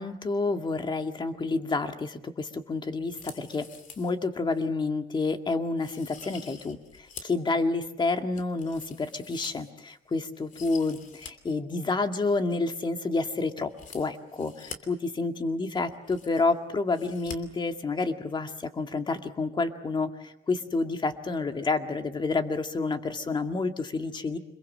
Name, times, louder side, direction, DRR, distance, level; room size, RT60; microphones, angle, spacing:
voice 1, 0.0-3.7 4.0-24.4, left 3 dB, 25° left, 6 dB, 2.1 m, -29 dB
sound 1, 3.1-4.2 4.5-4.6 5.2-5.3 5.8-7.4 7.8-10.0 10.3-11.3 11.6-11.7 13.7-14.8 15.6-15.7 15.9-16.6 16.9-17.4 17.7-17.8, left 6 dB, 50° left, 2.9 m, -46 dB
26.0 x 22.5 x 7.5 m, 0.79 s
cardioid pair, 110°, 17 cm